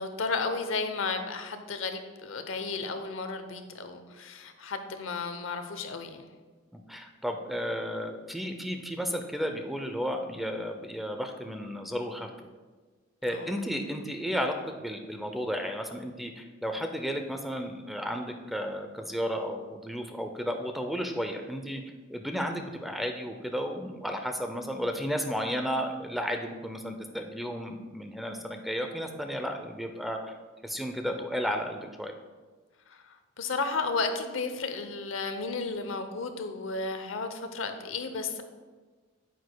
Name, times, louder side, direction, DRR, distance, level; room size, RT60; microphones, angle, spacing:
voice 1, 0.0-6.3 13.2-13.5 32.9-33.0 33.4-38.4, left 4 dB, 80° left, 7 dB, 0.8 m, -33 dB
voice 2, 6.7-12.3 13.2-21.8 22.1-30.3 30.6-32.1, equal, ahead, 4 dB, 0.5 m, -33 dB
9.1 x 8.3 x 2.3 m, 1.4 s
head